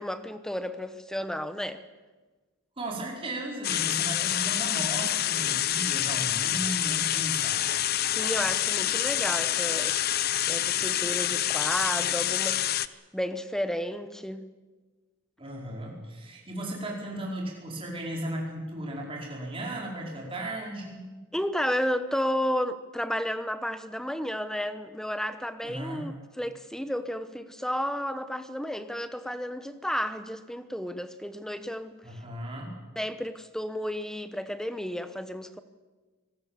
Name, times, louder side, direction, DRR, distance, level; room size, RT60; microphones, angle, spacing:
voice 1, 0.0-1.8 3.9-4.0 8.1-10.1 10.5-14.5 21.3-32.0 33.0-35.6, equal, ahead, 11 dB, 0.9 m, -32 dB
voice 2, 2.8-7.6 15.4-21.0 25.6-26.1 32.0-32.7, right 1 dB, 25° right, -2 dB, 4.7 m, -36 dB
sound 1, 3.6-12.9, left 12 dB, 45° left, 0.6 m, -27 dB
25.0 x 19.0 x 7.4 m, 1.3 s
head